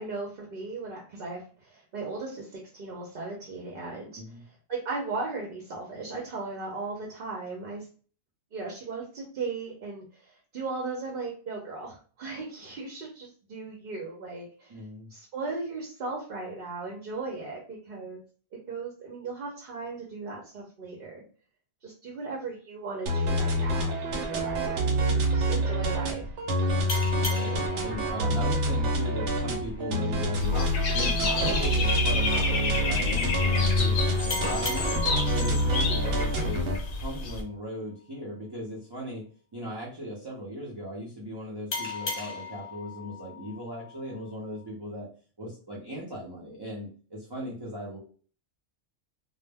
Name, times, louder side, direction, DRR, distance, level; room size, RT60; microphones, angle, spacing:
voice 1, 0.0-4.2 4.7-7.9 8.5-14.8 15.1-18.2 18.7-21.2 21.8-24.8 25.1-26.2, right 3 dB, 55° right, -1 dB, 0.8 m, -37 dB
voice 2, 14.7-15.1 27.2-30.6 30.9-34.0 34.2-35.0 35.3-39.2 39.5-45.1 45.4-48.0, equal, 30° right, -5 dB, 0.5 m, -37 dB
sound 1, 23.1-36.8, equal, 85° right, 0.9 m, -27 dB
sound 2, 26.9-30.1 34.3-37.5 41.7-44.7, left 4 dB, 50° left, 0.7 m, -38 dB
Dog / Bird, 30.4-37.4, left 4 dB, 75° left, 0.9 m, -29 dB
2.1 x 2.1 x 3.3 m, 0.41 s
omnidirectional pair, 1.2 m